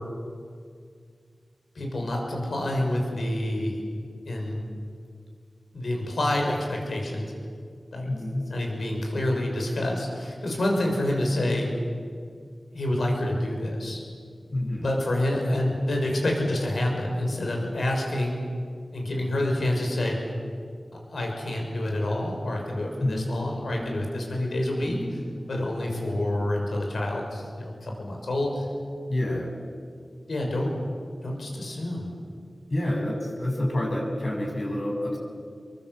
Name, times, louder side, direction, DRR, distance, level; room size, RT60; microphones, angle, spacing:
voice 1, 1.7-3.8 4.3-4.6 5.7-7.3 7.9-8.1 8.5-11.7 12.7-14.0 14.8-18.4 18.9-20.2 21.1-25.2 25.5-28.7 30.3-30.7 31.2-32.1, left 1 dB, 85° left, 0 dB, 6.4 m, -27 dB
voice 2, 8.1-8.4 14.5-14.9 15.3-15.4 23.0-23.3 29.1-29.5 32.7-35.2, left 1 dB, 50° left, 0 dB, 7.8 m, -28 dB
sound 1, 23.2-28.7 29.2-30.3 30.8-31.0, equal, 10° left, 2.2 m, -44 dB
28.0 x 23.5 x 8.1 m, 2.1 s
wide cardioid pair, 80°, 0 cm